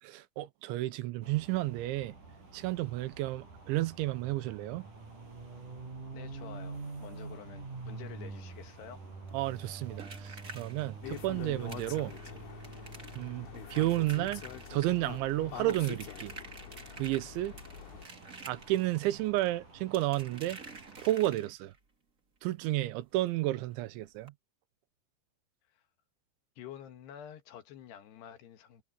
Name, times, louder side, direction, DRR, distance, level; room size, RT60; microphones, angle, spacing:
voice 1, 0.0-2.1 2.5-4.9 9.3-12.1 13.1-14.5 14.7-16.3 17.0-17.6 18.5-20.6 21.0-21.7 22.4-24.3, right 16 dB, 85° right, 3.2 m, -32 dB
sound 1, 1.2-21.2, right 3 dB, 45° right, 8.0 m, -48 dB
voice 2, 6.1-9.0 25.7-25.8 26.6-28.8, left 10 dB, 70° left, 3.4 m, -49 dB
sound 2, 9.3-21.8 23.2-23.3 23.6-23.8 24.2-24.3, right 3 dB, 30° right, 1.7 m, -50 dB
sound 3, 11.0-18.1, left 9 dB, 85° left, 4.8 m, -45 dB
omnidirectional pair, 5.3 m